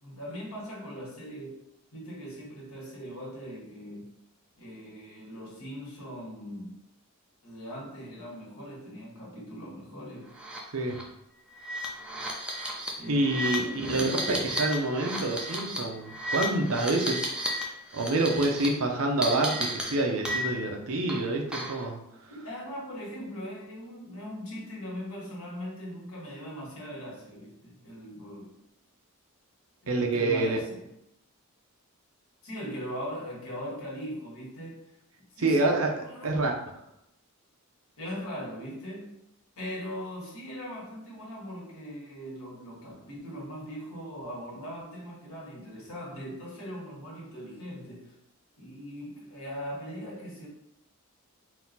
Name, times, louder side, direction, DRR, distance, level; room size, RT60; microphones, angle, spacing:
voice 1, 0.0-1.6 1.9-4.1 4.6-6.7 7.4-10.3 13.0-14.3 22.3-28.5 29.8-30.8 32.4-34.9 35.4-36.4 38.0-39.2 39.6-48.1 48.6-50.5, equal, 80° left, -4 dB, 1.5 m, -40 dB
sound 1, 10.4-10.6 10.9-11.0 11.5-17.6 17.9-18.7 19.2-20.7 21.1-21.8, equal, 5° right, 0.6 m, -33 dB
voice 2, 13.1-22.0 29.9-30.6 35.4-35.9 36.2-36.5, right 2 dB, 75° right, 2 dB, 0.7 m, -27 dB
4.0 x 2.4 x 4.1 m, 0.81 s
head